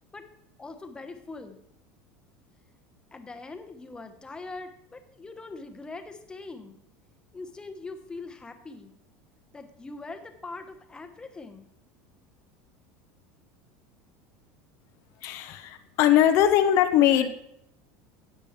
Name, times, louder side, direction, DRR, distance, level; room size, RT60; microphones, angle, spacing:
voice 1, 0.6-1.6 3.1-6.8 7.3-9.0 9.5-11.7, left 3 dB, 15° left, 7 dB, 1.1 m, -42 dB
voice 2, 15.2-17.3, left 11 dB, 60° left, 8 dB, 0.9 m, -21 dB
13.5 x 9.0 x 3.3 m, 0.75 s
supercardioid pair, 130°, 6 cm